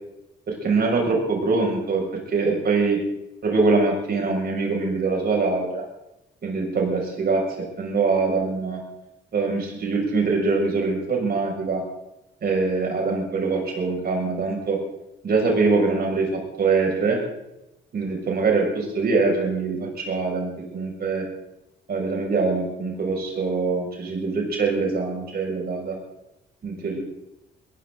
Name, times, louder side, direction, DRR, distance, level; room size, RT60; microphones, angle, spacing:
voice 1, 0.5-3.0 3.4-5.8 6.4-8.8 9.3-11.8 12.4-14.8 15.2-17.2 17.9-21.2 21.9-26.0 26.6-27.0, right 4 dB, 50° right, 0 dB, 6.6 m, -23 dB
21.0 x 16.5 x 4.0 m, 0.90 s
cardioid pair, 90°, 20 cm